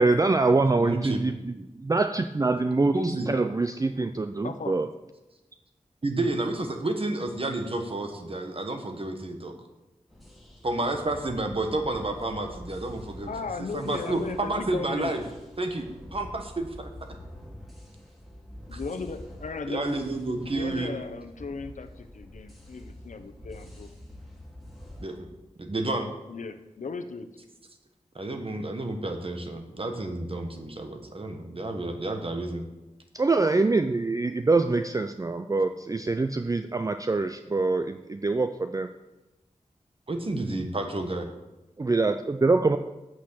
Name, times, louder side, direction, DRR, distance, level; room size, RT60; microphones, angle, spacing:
voice 1, 0.0-1.6 1.9-4.9 33.1-38.9 41.8-42.8, right 3 dB, 25° right, 8 dB, 0.4 m, -24 dB
voice 2, 0.8-1.2 2.9-3.3 6.0-9.5 10.6-13.3 13.7-15.2 15.6-15.8 16.1-16.9 18.7-18.8 19.7-20.9 25.0-25.3 25.6-26.1 28.1-32.6 40.1-41.3, right 2 dB, 45° right, 5 dB, 1.4 m, -30 dB
voice 3, 4.4-4.8 13.3-15.1 18.7-20.1 20.5-23.9 26.3-27.3, left 4 dB, 80° left, 7 dB, 0.8 m, -36 dB
sound 1, 10.1-25.2, left 1 dB, ahead, 2.7 m, -46 dB
8.3 x 6.2 x 6.3 m, 1.0 s
wide cardioid pair, 65°, 13 cm